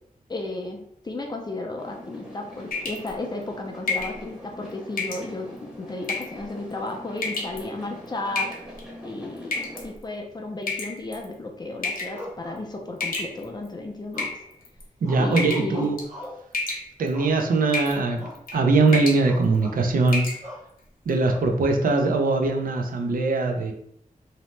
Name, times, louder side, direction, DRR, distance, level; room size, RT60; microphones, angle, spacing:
voice 1, 0.3-8.5 9.0-14.4 15.2-15.9, left 2 dB, 30° left, 1 dB, 0.4 m, -33 dB
sound 1, 1.8-9.9, equal, 5° right, 0.8 m, -43 dB
sound 2, 2.7-3.1 3.9-4.2 5.0-5.3 6.0-6.4 7.2-7.6 8.4-8.8 9.5-9.8 10.7-11.2 11.8-12.2 13.0-13.7 14.1-14.8 15.4-15.7 16.0-16.2 16.5-17.1 17.7-18.0 18.3-18.6 18.9-19.2 19.6-19.7 20.1-20.4, left 3 dB, 85° left, 0.7 m, -29 dB
sound 3, 12.1-13.1 14.1-14.6 15.0-16.5 17.1-17.7 18.2-18.4 18.7-18.9 19.2-19.8 20.4-20.7 21.3-22.0, left 1 dB, 55° right, 0.8 m, -41 dB
voice 2, 15.0-16.0 17.0-20.3 21.1-23.7, right 3 dB, 80° right, 3 dB, 0.5 m, -21 dB
2.7 x 2.1 x 3.1 m, 0.71 s
wide cardioid pair, 110°, 14 cm